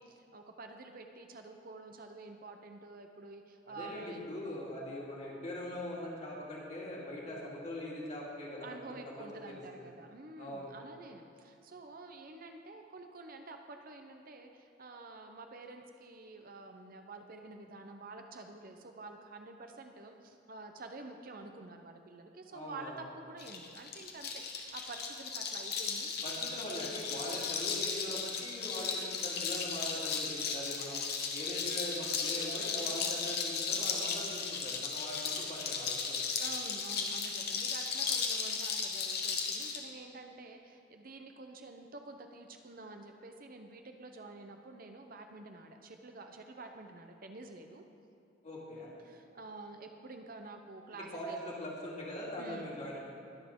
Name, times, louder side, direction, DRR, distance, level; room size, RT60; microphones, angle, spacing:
voice 1, 0.0-4.3 8.6-26.1 36.4-47.8 49.0-51.4 52.4-52.7, right 3 dB, 45° right, 5 dB, 0.7 m, -49 dB
voice 2, 3.7-8.8 9.0-9.8 10.4-10.7 22.5-23.0 26.2-31.0 31.3-36.3 48.4-48.9 51.1-53.0, left 1 dB, 35° left, -5 dB, 2.4 m, -42 dB
sound 1, 23.4-39.8, left 5 dB, 55° left, 1.1 m, -36 dB
21.0 x 7.3 x 3.7 m, 2.4 s
head